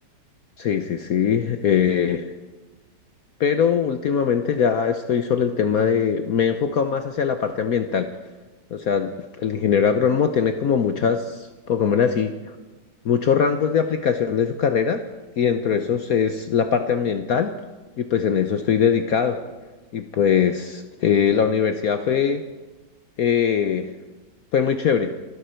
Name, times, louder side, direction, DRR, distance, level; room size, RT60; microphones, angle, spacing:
voice 1, 0.6-2.3 3.4-8.1 8.7-9.1 9.4-12.4 13.0-15.0 15.4-17.6 18.0-19.4 19.9-22.4 23.2-23.9 24.5-25.1, left 7 dB, 60° left, 8 dB, 1.0 m, -21 dB
27.5 x 11.5 x 4.4 m, 1.2 s
omnidirectional pair, 2.1 m